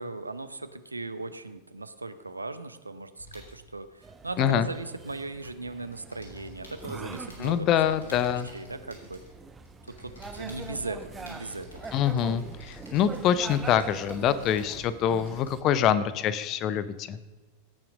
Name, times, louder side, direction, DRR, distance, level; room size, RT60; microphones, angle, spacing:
voice 1, 0.0-9.2 9.8-11.8, right 2 dB, 80° right, 11 dB, 0.7 m, -38 dB
sound 1, 3.2-5.4 5.7-15.8, left 1 dB, 70° left, 3.5 m, -49 dB
sound 2, 4.0-15.6, right 4 dB, 15° right, 0.8 m, -44 dB
voice 2, 7.4-8.5 11.9-17.2, left 9 dB, 35° left, 15 dB, 0.6 m, -25 dB
17.0 x 6.0 x 5.0 m, 1.3 s
figure-of-eight pair, 90°, 0 cm